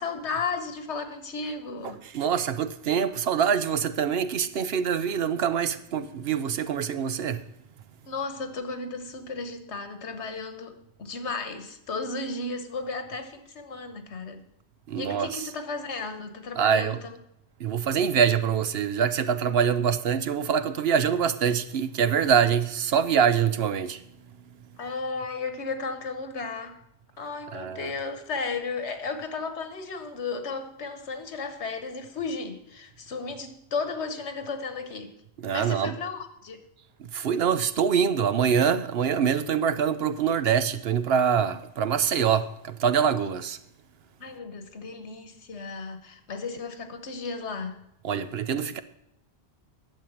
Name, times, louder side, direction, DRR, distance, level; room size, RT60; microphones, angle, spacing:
voice 1, 0.0-2.0 8.0-14.4 14.9-17.2 24.8-26.8 27.2-35.1 35.5-36.6 44.2-47.8, left 4 dB, 85° left, 1.5 m, -34 dB
voice 2, 2.0-7.4 14.9-15.4 16.6-17.0 17.6-24.0 27.5-27.9 35.4-36.0 37.0-43.6 48.0-48.8, right 7 dB, 65° right, 0.9 m, -24 dB
11.5 x 7.4 x 7.2 m
omnidirectional pair, 1.1 m